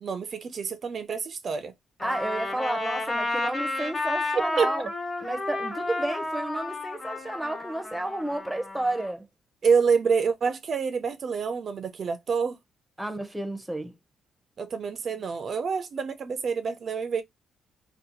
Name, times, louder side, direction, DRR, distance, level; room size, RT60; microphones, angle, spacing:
voice 1, 0.0-1.7 4.6-4.7 9.6-12.6 14.6-17.2, right 5 dB, 50° right, 0.3 m, -27 dB
Trumpet, 2.0-9.1, left 2 dB, 30° left, 1.2 m, -32 dB
voice 2, 2.0-4.9 5.2-9.3 13.0-13.9, right 1 dB, 5° right, 0.6 m, -31 dB
2.7 x 2.1 x 2.8 m
cardioid pair, 90°, 0 cm